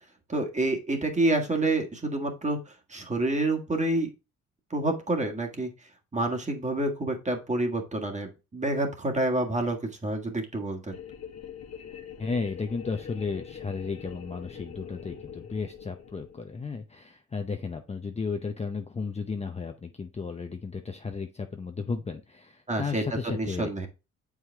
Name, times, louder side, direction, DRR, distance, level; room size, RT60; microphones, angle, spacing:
voice 1, 0.3-4.1 4.7-10.9 22.7-23.9, right 2 dB, 25° right, 3 dB, 1.7 m, -28 dB
sound 1, 10.9-16.6, left 8 dB, 60° left, 1.3 m, -43 dB
voice 2, 12.2-23.7, left 4 dB, 20° left, 5 dB, 0.6 m, -34 dB
7.2 x 4.9 x 3.4 m, 0.28 s
cardioid pair, 90°, 30 cm